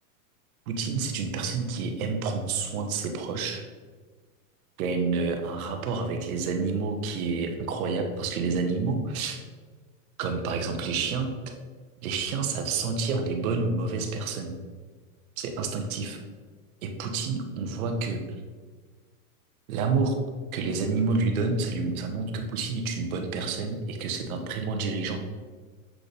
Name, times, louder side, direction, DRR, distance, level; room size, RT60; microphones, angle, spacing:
voice 1, 0.7-3.7 4.8-9.4 10.2-11.5 12.0-14.6 15.4-16.2 16.8-18.3 19.7-20.2 20.5-25.2, right 4 dB, 70° right, 5 dB, 1.2 m, -29 dB
7.5 x 4.0 x 3.4 m, 1.5 s
hypercardioid pair, 120°, 43 cm